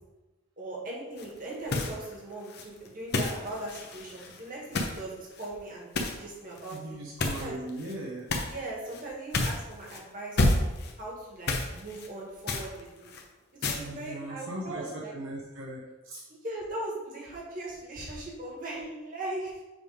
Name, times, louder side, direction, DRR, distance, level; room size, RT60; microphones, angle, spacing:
voice 1, 0.6-5.9 6.2-7.0 7.3-7.6 8.4-10.6 11.0-13.1 13.6-15.1 16.4-19.6, right 1 dB, 40° right, -4 dB, 1.7 m, -39 dB
sound 1, 1.2-1.4 1.7-2.1 2.4-5.0 5.3-5.5 5.9-6.2 6.6-6.8 7.2-7.9 8.3-8.6 8.9-9.0 9.3-10.0 10.4-10.9 11.5-12.1 12.5-13.2 13.6-13.8, left 2 dB, 50° left, 0.8 m, -30 dB
voice 2, 6.7-8.3 13.8-16.2, right 1 dB, 70° right, -3 dB, 0.9 m, -39 dB
7.2 x 3.5 x 5.0 m, 1.1 s
head